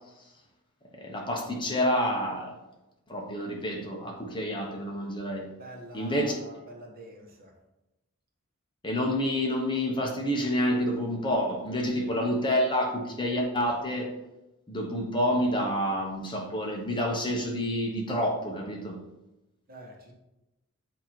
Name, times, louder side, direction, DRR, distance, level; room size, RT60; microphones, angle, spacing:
voice 1, 1.0-2.6 3.1-5.5 5.9-6.3 8.8-14.1 14.7-19.0, equal, 20° left, 0 dB, 1.0 m, -28 dB
voice 2, 5.6-7.5 19.7-20.1, right 1 dB, 45° right, 0 dB, 1.3 m, -46 dB
8.2 x 2.9 x 4.5 m, 0.96 s
head